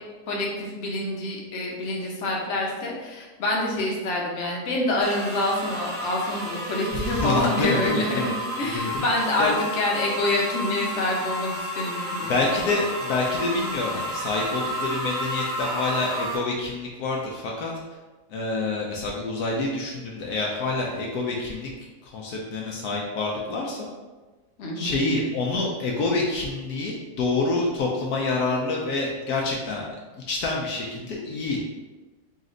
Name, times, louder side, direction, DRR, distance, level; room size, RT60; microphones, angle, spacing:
voice 1, 0.3-12.6 24.6-25.0, left 1 dB, 55° left, -2 dB, 1.0 m, -26 dB
sound 1, 5.0-16.4, equal, 30° right, 0.9 m, -31 dB
voice 2, 6.9-8.3 8.6-9.1 9.4-9.5 12.3-17.7 18.3-21.7 22.0-23.9 24.8-29.9 30.3-31.6, left 3 dB, 75° left, -1 dB, 1.1 m, -27 dB
4.1 x 2.5 x 3.8 m, 1.2 s
omnidirectional pair, 1.7 m